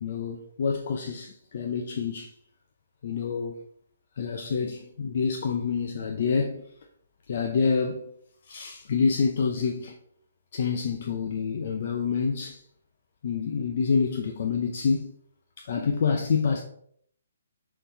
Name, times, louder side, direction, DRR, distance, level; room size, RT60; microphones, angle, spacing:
voice 1, 0.0-2.3 3.0-3.6 4.2-6.6 7.3-8.1 8.5-10.0 10.5-12.6 13.2-15.1 15.6-16.6, left 5 dB, 45° left, 0.6 m, -27 dB
6.7 x 4.0 x 4.5 m
hypercardioid pair, 175°, 0 cm